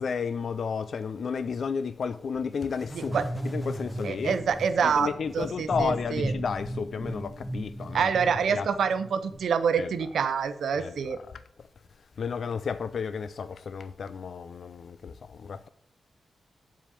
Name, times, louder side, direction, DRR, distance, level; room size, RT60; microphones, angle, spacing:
voice 1, 0.0-4.3 4.8-8.1 8.5-8.7 9.8-9.9 10.8-11.4 12.2-15.7, left 6 dB, 65° left, 0.4 m, -32 dB
sound 1, 2.6-9.4, right 1 dB, 10° left, 1.2 m, -36 dB
voice 2, 4.0-5.1 5.3-6.3 7.9-11.2, right 6 dB, 85° right, 0.6 m, -26 dB
7.5 x 5.0 x 6.9 m
wide cardioid pair, 95°, 0 cm